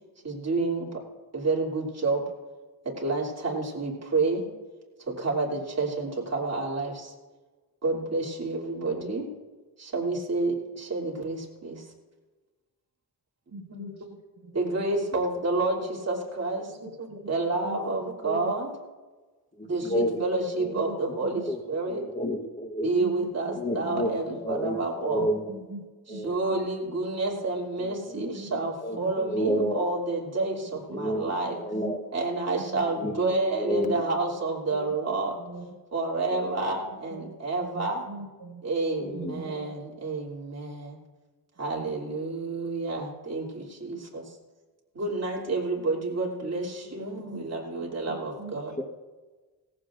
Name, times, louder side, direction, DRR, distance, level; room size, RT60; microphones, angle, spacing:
voice 1, 0.2-1.0 1.3-2.3 2.8-4.5 5.0-7.1 7.8-9.3 9.8-11.9 13.7-13.8 14.5-16.7 17.0-18.7 19.7-22.0 22.8-25.3 26.1-31.6 32.1-35.3 35.9-38.0 38.6-41.0 41.6-44.3 44.9-48.8, right 3 dB, 40° right, -2 dB, 3.0 m, -29 dB
voice 2, 13.5-14.0 14.4-14.5 16.8-17.2 17.6-18.0 18.2-18.5 19.8-20.1 20.7-21.0 21.2-21.3 23.0-23.3 23.8-24.1 25.2-26.6 28.1-28.5 28.9-29.1 29.4-29.8 30.9-31.1 31.4-32.0 32.6-32.8 33.2-33.4 33.7-33.9 35.4-35.7 37.1-37.3 37.7-38.6 39.1-39.7 47.1-47.5 48.1-48.6, right 1 dB, 65° right, 0 dB, 4.9 m, -41 dB
voice 3, 19.6-20.3 20.6-20.7 21.5-21.6 21.9-22.9 23.5-25.6 26.1-26.7 27.8-29.9 30.9-32.1 32.8-33.1 33.6-34.0 34.7-35.5 36.3-36.5 39.0-39.7 48.8-48.9, equal, 20° left, 3 dB, 1.1 m, -31 dB
18.0 x 15.0 x 2.6 m, 1.3 s
wide cardioid pair, 100°, 39 cm